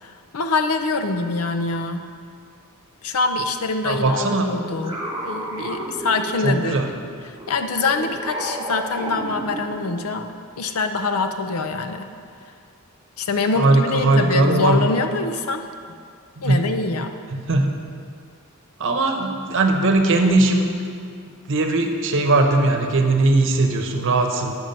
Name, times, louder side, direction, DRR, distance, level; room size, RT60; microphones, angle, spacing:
voice 1, 0.0-2.1 3.0-6.9 7.2-10.3 10.6-12.1 13.2-16.0 16.4-17.1, left 3 dB, 75° left, 7 dB, 0.6 m, -24 dB
voice 2, 3.9-4.5 6.4-6.9 13.6-14.8 16.4-16.6 17.5-17.7 18.8-20.7 21.5-24.6, right 2 dB, 60° right, 4 dB, 0.9 m, -19 dB
sound 1, 4.0-6.7 7.3-10.0, right 1 dB, 15° right, 1.7 m, -33 dB
8.9 x 6.1 x 5.4 m, 2.3 s
head